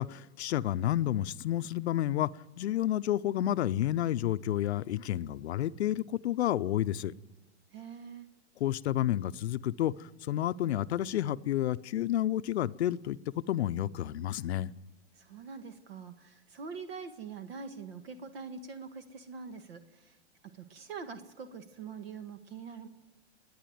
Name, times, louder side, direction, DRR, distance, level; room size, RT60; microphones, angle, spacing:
voice 1, 0.0-2.3 2.6-7.1 8.6-14.7, left 12 dB, 70° left, 14 dB, 0.7 m, -30 dB
voice 2, 7.7-8.3 15.1-20.2 20.5-22.9, right 5 dB, 60° right, 9 dB, 1.7 m, -44 dB
28.5 x 10.0 x 9.3 m, 1.1 s
hypercardioid pair, 130°, 34 cm